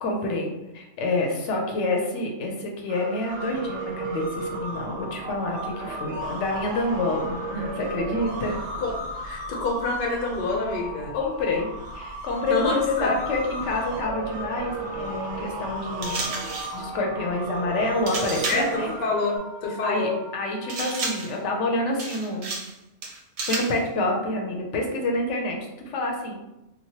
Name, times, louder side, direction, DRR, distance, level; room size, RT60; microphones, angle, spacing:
voice 1, 0.0-8.6 11.1-11.7 11.9-16.4 16.7-18.9 19.8-22.5 23.5-25.6 25.9-26.4, left 2 dB, 80° left, 1 dB, 0.9 m, -28 dB
sound 1, 2.9-19.4, right 2 dB, 80° right, 0.9 m, -34 dB
voice 2, 9.2-11.1 12.5-13.1 18.5-20.2, left 3 dB, 55° left, 0 dB, 0.7 m, -27 dB
sound 2, 16.0-16.8 18.1-18.8 20.7-21.4 22.0-22.7 23.0-23.8, right 3 dB, 65° right, 0.3 m, -31 dB
Wind instrument woodwind instrument, 18.0-22.1, left 1 dB, 30° left, 0.8 m, -46 dB
3.0 x 2.2 x 2.8 m, 0.95 s
omnidirectional pair, 1.2 m